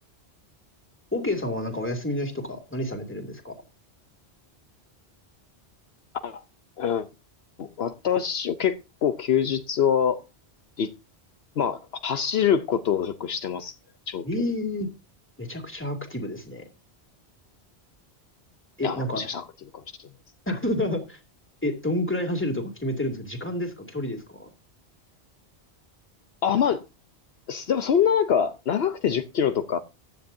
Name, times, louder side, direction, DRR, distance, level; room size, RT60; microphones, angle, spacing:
voice 1, 1.1-3.6 14.2-14.9 15.4-16.6 18.8-19.2 20.5-21.2 21.6-24.5, left 1 dB, 10° left, 2.6 m, -29 dB
voice 2, 6.8-7.1 7.6-10.2 10.8-10.9 11.6-13.7 14.1-14.3 18.8-19.4 19.7-20.1 26.4-26.8 27.5-29.8, left 8 dB, 70° left, 1.0 m, -25 dB
15.0 x 10.0 x 2.7 m
omnidirectional pair, 1.1 m